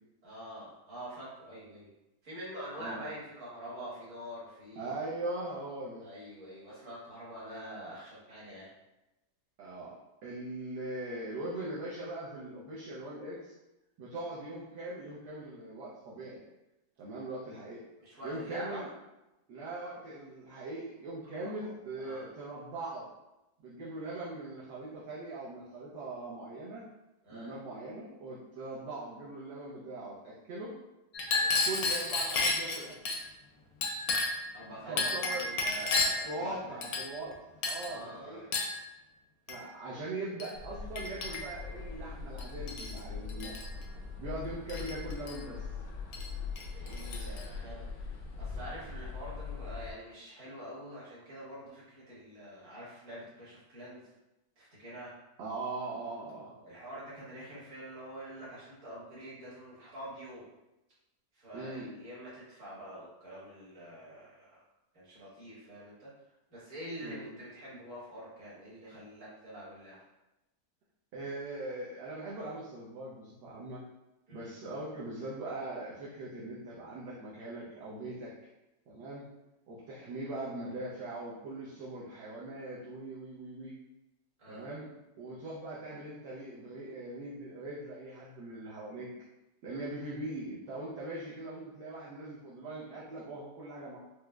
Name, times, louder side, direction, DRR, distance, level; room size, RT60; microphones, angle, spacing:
voice 1, 0.2-1.9 2.2-4.9 6.0-8.7 18.0-18.9 21.4-22.3 27.2-27.5 31.3-31.6 34.5-36.8 37.8-38.5 46.7-54.0 54.6-55.1 56.6-60.5 61.3-64.6 64.9-66.1 66.5-70.0 74.3-74.5 84.4-84.7 89.7-89.8, right 1 dB, 50° right, -8 dB, 1.5 m, -46 dB
voice 2, 4.8-6.1 9.6-10.0 10.2-13.5 14.0-16.4 17.0-17.8 18.2-18.9 19.5-23.1 23.6-26.8 27.3-30.7 31.6-33.1 34.9-35.5 36.2-37.4 37.7-38.6 39.5-43.5 44.2-45.7 55.4-56.5 61.5-61.9 67.0-67.3 71.1-73.8 74.3-78.3 78.9-79.2 79.7-83.7 84.5-84.9 85.2-89.1 89.6-94.0, right 2 dB, 70° right, -6 dB, 1.2 m, -41 dB
Chink clink, 31.1-33.2 33.8-34.5 35.0-36.3 36.8-37.3 37.6-37.9 38.5-38.8 39.5-39.7 40.4-40.6 41.0-41.7 42.4-43.0 43.3-43.7 44.7-45.4 46.1-46.3 46.6-47.5, left 3 dB, 70° left, 0.9 m, -32 dB
sound 1, 40.5-49.9, left 5 dB, 90° left, 1.2 m, -41 dB
4.7 x 2.0 x 2.3 m, 0.97 s
omnidirectional pair, 1.8 m